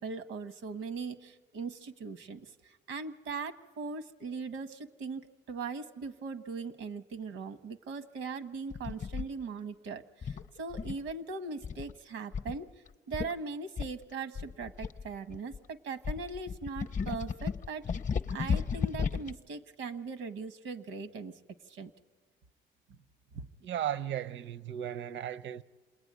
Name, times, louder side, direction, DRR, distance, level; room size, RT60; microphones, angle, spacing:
voice 1, 0.0-12.7 13.1-17.8 18.3-21.4 21.7-21.9 23.3-23.4, right 4 dB, 85° right, 1.2 m, -40 dB
sound 1, 8.7-9.3 10.2-11.1 11.6-11.9 12.3-12.5 12.9-13.0 13.1-13.3 13.8-15.6 16.0-19.3, left 6 dB, 40° left, 0.7 m, -34 dB
voice 2, 23.6-25.6, right 11 dB, 70° right, 0.7 m, -35 dB
27.5 x 21.0 x 9.5 m
cardioid pair, 90°, 20 cm